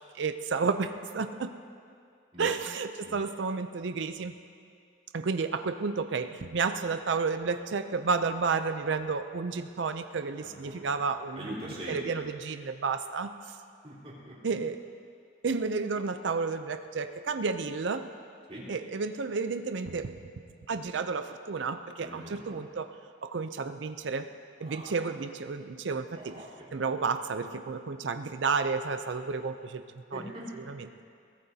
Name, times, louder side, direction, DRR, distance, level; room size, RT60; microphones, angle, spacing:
voice 1, 0.0-1.5 2.4-4.3 5.1-11.5 11.9-13.3 14.4-14.8 15.4-18.1 18.7-20.2 20.7-22.9 23.2-24.3 24.6-26.4 26.7-29.8 30.1-30.2 30.7-30.9, right 4 dB, 75° right, 9 dB, 0.5 m, -31 dB
voice 2, 10.4-10.9 11.3-12.2 13.8-14.4 18.5-18.7 22.0-22.6 24.6-25.0 26.1-26.8 30.1-30.6, right 1 dB, 30° right, -6 dB, 3.9 m, -43 dB
21.5 x 17.0 x 2.8 m, 2.3 s
head